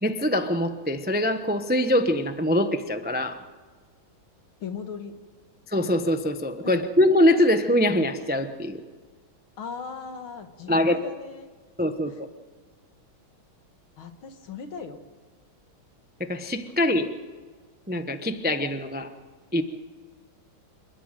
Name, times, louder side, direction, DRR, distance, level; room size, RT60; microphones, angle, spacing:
voice 1, 0.0-3.4 5.7-8.8 10.7-11.0 11.8-12.3 16.2-17.1 17.9-19.1 19.5-19.6, left 1 dB, 10° right, 8 dB, 0.4 m, -23 dB
voice 2, 4.6-5.2 6.6-6.8 9.6-11.5 12.1-12.2 14.0-15.0, left 6 dB, 70° left, 7 dB, 2.5 m, -38 dB
28.0 x 13.0 x 9.1 m, 1.5 s
omnidirectional pair, 2.3 m